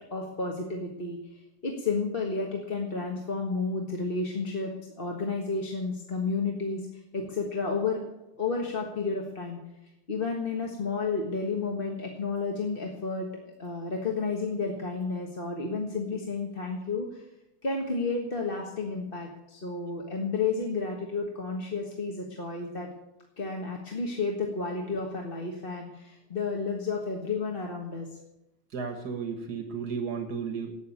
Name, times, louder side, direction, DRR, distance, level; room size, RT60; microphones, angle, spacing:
voice 1, 0.1-6.9 7.1-9.6 10.1-13.3 13.6-17.2 17.6-22.9 23.4-28.1, left 4 dB, 35° left, 0 dB, 1.6 m, -31 dB
voice 2, 28.7-30.7, right 6 dB, 75° right, 6 dB, 2.0 m, -33 dB
12.5 x 9.1 x 8.6 m, 0.93 s
omnidirectional pair, 1.7 m